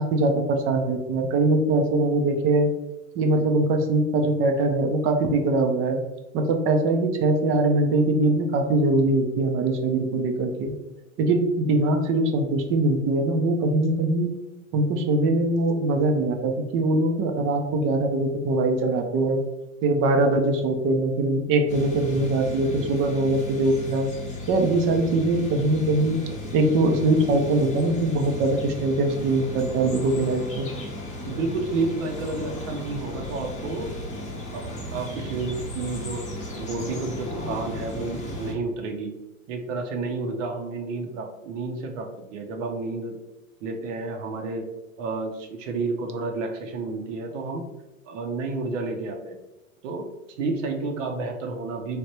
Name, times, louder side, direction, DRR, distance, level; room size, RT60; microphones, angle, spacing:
voice 1, 0.0-2.7 3.2-6.0 6.3-10.7 11.2-14.3 14.7-19.4 19.8-24.1 24.5-26.2 26.5-30.7, right 2 dB, 30° right, 4 dB, 0.5 m, -22 dB
sound 1, 21.7-38.5, left 1 dB, 20° left, 0.7 m, -35 dB
voice 2, 31.2-33.9 34.5-34.6 34.9-36.2 36.6-39.1 39.5-43.2 43.6-44.7 45.0-47.7 48.1-49.4 49.8-50.1 50.4-52.0, right 3 dB, 65° right, 4 dB, 0.8 m, -30 dB
3.3 x 2.4 x 2.8 m, 1.1 s
hypercardioid pair, 95°, 41 cm